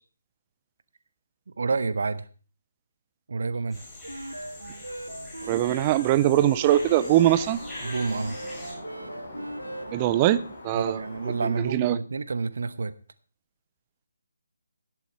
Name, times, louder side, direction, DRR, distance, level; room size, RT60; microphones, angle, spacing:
voice 1, 1.6-2.2 3.3-3.8 7.8-8.4 10.7-12.9, right 4 dB, 55° right, 14 dB, 1.0 m, -29 dB
sound 1, 3.7-8.7, left 1 dB, 5° left, 7.2 m, -43 dB
sound 2, 4.0-10.1, right 1 dB, 80° right, 1.2 m, -39 dB
voice 2, 5.5-7.6 9.9-11.0 11.3-12.0, right 13 dB, 20° right, 16 dB, 0.5 m, -22 dB
sound 3, 6.6-11.6, left 1 dB, 50° left, 6.2 m, -43 dB
12.5 x 10.5 x 4.5 m, 0.39 s
figure-of-eight pair, 145°, 0 cm